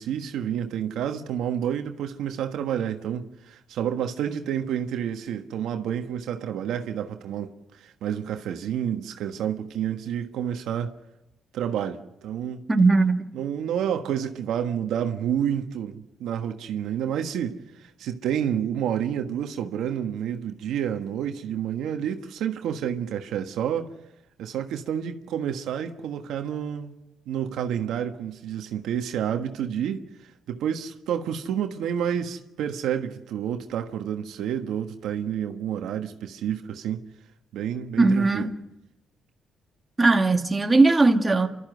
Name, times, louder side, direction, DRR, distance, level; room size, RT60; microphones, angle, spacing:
voice 1, 0.0-10.9 11.5-12.6 13.3-23.9 24.4-26.9 27.3-30.0 30.5-37.0 37.5-38.5, right 9 dB, 80° right, 1.4 m, -29 dB
voice 2, 12.7-13.3 38.0-38.5 40.0-41.5, right 3 dB, 20° right, 1.8 m, -19 dB
28.5 x 13.0 x 7.9 m
cardioid pair, 90°, 0 cm